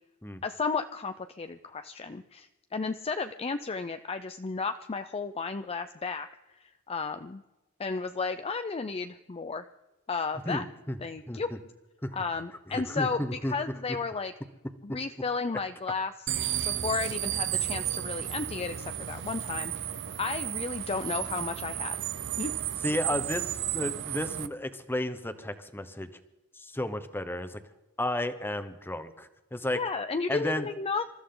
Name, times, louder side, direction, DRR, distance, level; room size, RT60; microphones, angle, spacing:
voice 1, 0.4-7.4 7.8-9.7 10.1-10.6 11.0-11.5 12.1-14.3 14.8-16.1 16.6-19.7 20.2-22.0 22.4-22.5 29.7-31.0, left 4 dB, 25° left, 9 dB, 0.5 m, -33 dB
voice 2, 10.4-11.0 11.3-11.6 12.0-12.2 12.7-13.5 22.8-26.1 26.6-27.6 28.0-29.8 30.3-30.7, left 1 dB, 10° left, 10 dB, 1.0 m, -33 dB
sound 1, 16.3-24.5, right 11 dB, 55° right, 0.7 m, -33 dB
27.0 x 13.5 x 3.9 m, 1.1 s
head